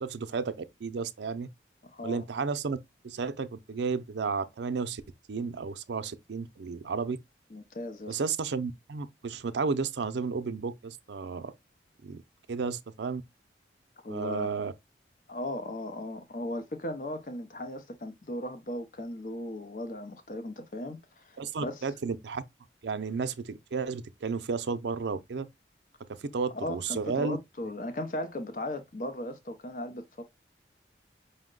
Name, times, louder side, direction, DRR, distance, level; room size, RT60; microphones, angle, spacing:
voice 1, 0.0-1.5 2.0-2.8 3.0-5.0 5.3-7.2 8.1-11.5 12.0-12.2 12.5-13.2 14.1-14.7 21.4-22.4 22.8-25.5 26.1-27.4, right 5 dB, 75° right, 0.5 m, -32 dB
voice 2, 1.8-2.3 7.5-8.2 14.0-14.5 15.3-21.9 26.5-30.2, left 1 dB, 45° left, 0.6 m, -37 dB
5.3 x 2.1 x 3.7 m
head